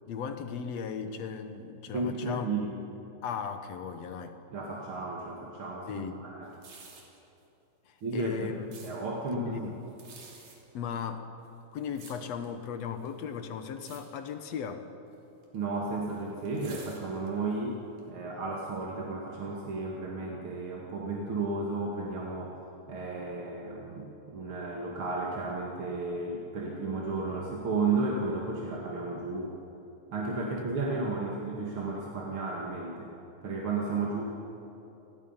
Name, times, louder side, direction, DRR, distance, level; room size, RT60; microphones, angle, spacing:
voice 1, 0.1-2.5 3.2-4.4 5.9-6.1 7.9-8.5 9.3-9.8 10.7-11.3 11.7-14.9, left 7 dB, 65° left, 8 dB, 2.1 m, -36 dB
voice 2, 1.9-2.7 4.5-6.5 8.0-8.5 8.8-9.7 15.5-22.5 22.9-29.6 30.1-33.1 33.4-34.3, right 3 dB, 45° right, -2 dB, 2.4 m, -33 dB
sound 1, 6.5-7.2 8.0-8.9 9.9-10.6 11.4-12.5 13.0-13.4 13.7-14.0 14.3-14.5 15.4-17.5 18.0-18.1, right 4 dB, 75° right, 4.4 m, -50 dB
29.0 x 20.0 x 5.7 m, 3.0 s
omnidirectional pair, 3.5 m